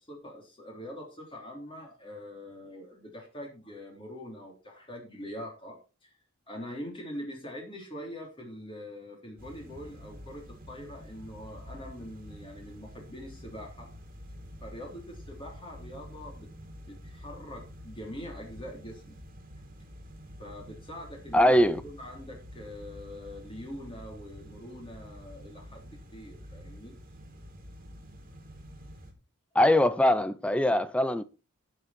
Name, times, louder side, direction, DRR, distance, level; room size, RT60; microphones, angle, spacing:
voice 1, 0.1-6.2 6.5-13.9 14.6-16.5 16.8-19.1 20.4-26.9, equal, 25° left, 3.4 m, -43 dB
sound 1, 9.4-29.1, equal, 40° right, 2.5 m, -48 dB
voice 2, 21.3-21.8 29.5-31.2, left 1 dB, 5° left, 0.5 m, -22 dB
15.5 x 6.6 x 4.2 m
head